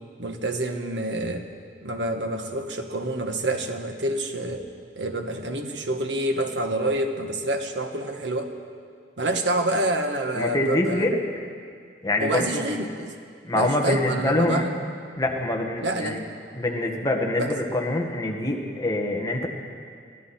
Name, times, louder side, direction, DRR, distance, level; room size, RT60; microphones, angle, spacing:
voice 1, 0.2-1.5 1.8-4.6 5.0-8.5 9.2-11.1 12.2-13.1 13.5-14.7 15.8-16.3 17.4-17.6, right 1 dB, 85° right, 5 dB, 1.3 m, -27 dB
voice 2, 10.3-11.2 12.0-12.6 13.4-14.7 15.2-16.3 16.5-19.5, left 1 dB, 20° left, 0 dB, 1.5 m, -25 dB
22.0 x 14.5 x 4.3 m, 2.2 s
head